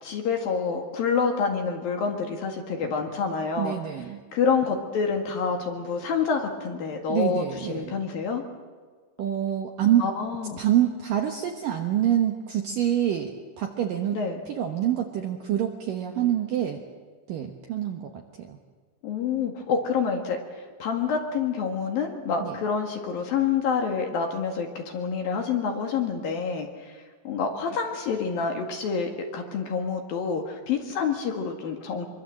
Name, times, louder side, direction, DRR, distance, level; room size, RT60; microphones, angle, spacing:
voice 1, 0.0-3.8 4.3-8.4 10.0-10.6 14.1-14.4 19.0-20.4 20.8-32.1, left 5 dB, 55° left, 3 dB, 3.3 m, -27 dB
voice 2, 3.6-4.2 7.1-7.9 9.2-10.1 10.6-14.2 14.5-16.8 17.3-18.6 22.4-22.6, right 11 dB, 70° right, 3 dB, 2.2 m, -26 dB
24.5 x 24.0 x 7.7 m, 1.5 s
omnidirectional pair, 5.5 m